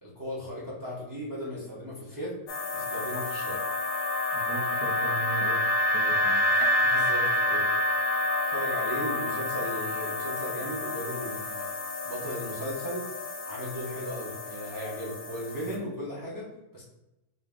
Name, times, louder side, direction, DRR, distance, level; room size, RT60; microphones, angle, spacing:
voice 1, 0.0-2.4 2.7-3.6 6.8-7.7 8.5-11.7 12.0-13.1 13.5-16.8, equal, 35° right, -7 dB, 0.3 m, -36 dB
sound 1, 2.5-15.8, left 1 dB, 70° left, 0.9 m, -29 dB
voice 2, 4.3-6.5, right 4 dB, 65° right, -3 dB, 1.1 m, -38 dB
3.6 x 2.6 x 3.6 m, 0.95 s
omnidirectional pair, 2.0 m